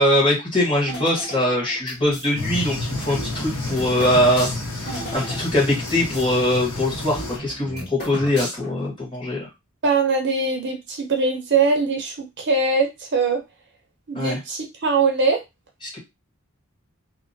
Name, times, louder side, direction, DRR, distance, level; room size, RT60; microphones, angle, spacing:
voice 1, 0.0-9.5 14.1-14.4 15.8-16.0, left 1 dB, 20° left, -4 dB, 1.2 m, -22 dB
sound 1, 0.9-2.3 2.9-6.3 6.6-6.7 6.9-8.9, equal, 50° left, 1.7 m, -35 dB
sound 2, 2.4-7.4, left 2 dB, 75° left, 0.8 m, -31 dB
voice 2, 9.8-13.4 14.1-15.4, right 4 dB, 50° right, 2 dB, 0.7 m, -22 dB
2.8 x 2.0 x 2.6 m, 0.22 s
head